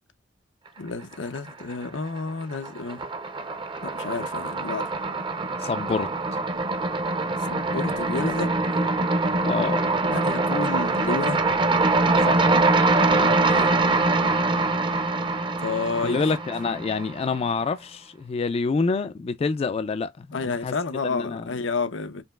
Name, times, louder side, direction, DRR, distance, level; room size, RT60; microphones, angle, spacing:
voice 1, 0.8-3.1 3.8-4.9 7.4-8.8 10.1-11.4 13.3-13.7 15.6-16.2 20.3-22.2, left 4 dB, 90° left, 0.7 m, -30 dB
sound 1, 1.1-1.9 2.2-17.3, right 3 dB, 25° right, 0.6 m, -24 dB
voice 2, 5.6-6.1 9.4-9.9 12.3-12.5 13.1-13.3 16.0-20.7 21.1-21.4, left 4 dB, 35° left, 0.3 m, -27 dB
5.2 x 2.9 x 2.2 m
head